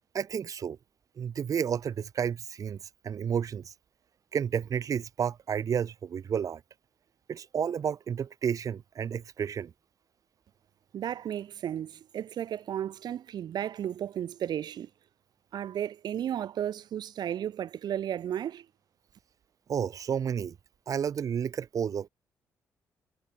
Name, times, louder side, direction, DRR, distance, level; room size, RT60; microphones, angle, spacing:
voice 1, 0.1-0.8 1.2-2.8 3.0-3.7 4.3-6.6 7.3-9.7 19.7-20.6 20.9-22.1, right 8 dB, 50° right, 0.4 m, -31 dB
voice 2, 10.9-14.9 15.5-18.7, right 10 dB, 70° right, 1.9 m, -34 dB
supercardioid pair, 55°, 7 cm